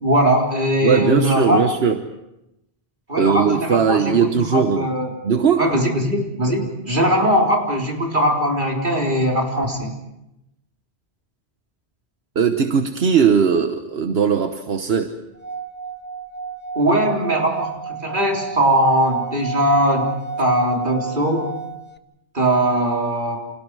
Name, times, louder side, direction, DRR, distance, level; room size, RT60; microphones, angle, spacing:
voice 1, 0.0-1.6 3.1-5.1 5.6-9.9 16.8-21.5 22.3-23.4, right 1 dB, 50° right, 0 dB, 4.1 m, -20 dB
voice 2, 0.8-2.0 3.2-4.9 5.2-5.7 12.3-15.2, right 6 dB, 75° right, 7 dB, 1.4 m, -19 dB
Singing / Glass, 15.4-22.0, right 5 dB, 10° left, 1.0 m, -32 dB
30.0 x 27.5 x 4.8 m, 0.90 s
omnidirectional pair, 1.1 m